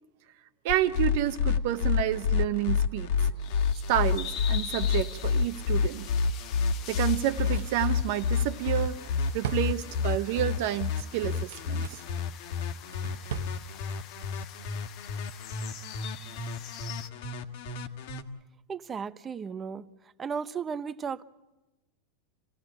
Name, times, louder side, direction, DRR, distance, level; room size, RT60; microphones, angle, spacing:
voice 1, 0.6-3.1 3.9-6.1 6.9-9.0 9.3-12.0, right 13 dB, 55° right, 0.9 m, -29 dB
sound 1, 0.7-18.2, left 6 dB, 60° left, 1.9 m, -29 dB
sound 2, 3.4-17.1, left 9 dB, 35° left, 1.3 m, -45 dB
Drawer open or close, 7.1-10.4 11.2-12.2 12.6-13.6 13.9-14.0, right 8 dB, 80° right, 1.0 m, -41 dB
voice 2, 18.7-19.9 20.2-21.2, right 6 dB, 15° right, 0.7 m, -34 dB
27.5 x 16.5 x 8.9 m
supercardioid pair, 160°, 0 cm